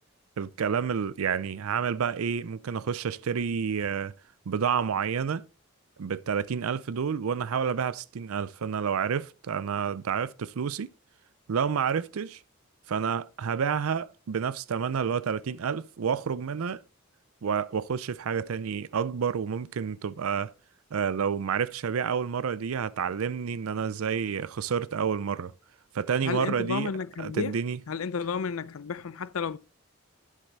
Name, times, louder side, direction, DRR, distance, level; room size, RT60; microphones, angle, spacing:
voice 1, 0.4-4.1 4.5-5.4 6.0-10.9 11.5-12.4 12.9-16.8 17.4-20.5 20.9-25.5 25.9-26.9 27.2-27.8, right 6 dB, 85° right, 0.5 m, -29 dB
voice 2, 26.2-27.6 27.9-29.6, left 5 dB, 80° left, 0.5 m, -32 dB
11.5 x 7.5 x 3.9 m
head